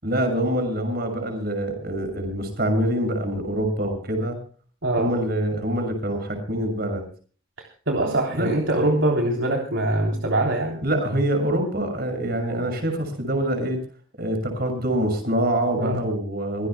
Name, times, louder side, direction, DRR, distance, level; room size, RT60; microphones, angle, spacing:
voice 1, 0.0-4.4 5.0-7.0 8.3-8.5 10.8-13.8 14.2-16.7, right 1 dB, 50° right, 6 dB, 6.6 m, -25 dB
voice 2, 4.8-5.1 7.9-10.8 15.8-16.0, right 1 dB, 65° right, 1 dB, 3.4 m, -23 dB
25.0 x 17.5 x 2.2 m, 0.40 s
head